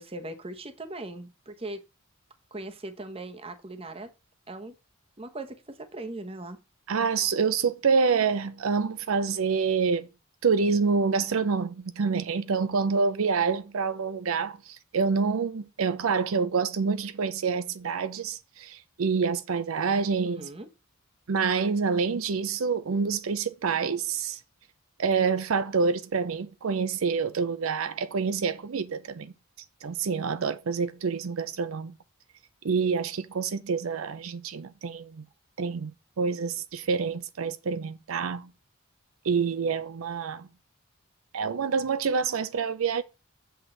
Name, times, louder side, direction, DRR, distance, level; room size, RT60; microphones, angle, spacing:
voice 1, 0.0-1.8 2.5-4.1 4.5-4.7 5.2-6.6 20.2-20.7, right 2 dB, 25° right, 1.0 m, -39 dB
voice 2, 6.9-10.1 10.4-20.5 21.3-24.4 25.0-29.3 29.8-31.9 32.6-35.2 35.6-35.9 36.2-38.5 39.2-40.5 41.3-43.0, right 5 dB, 80° right, 0.5 m, -27 dB
7.9 x 6.2 x 3.9 m
head